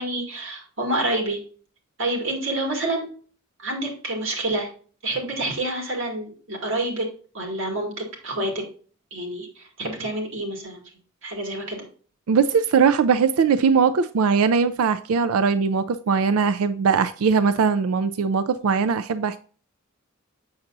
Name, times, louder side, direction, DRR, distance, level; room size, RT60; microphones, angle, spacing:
voice 1, 0.0-1.4 2.0-3.1 3.6-4.7 5.0-7.1 7.3-8.6 9.1-10.8 11.2-11.8, right 1 dB, 65° right, 2.3 m, -28 dB
voice 2, 12.3-19.4, right 5 dB, 85° right, 0.4 m, -20 dB
7.1 x 6.6 x 2.6 m
head